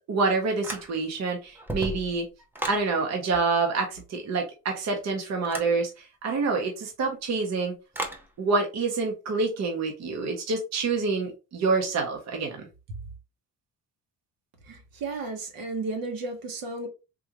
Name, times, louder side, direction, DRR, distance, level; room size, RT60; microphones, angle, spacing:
voice 1, 0.1-2.3 2.6-7.8 8.4-12.7, right 4 dB, 50° right, 0.8 m, -27 dB
sound 1, 0.6-1.2 1.5-2.9 5.4-5.8 7.9-8.3, right 1 dB, 5° right, 0.5 m, -34 dB
voice 2, 14.7-16.9, right 3 dB, 75° right, 1.1 m, -33 dB
3.7 x 2.5 x 2.9 m
cardioid pair, 135°, 35 cm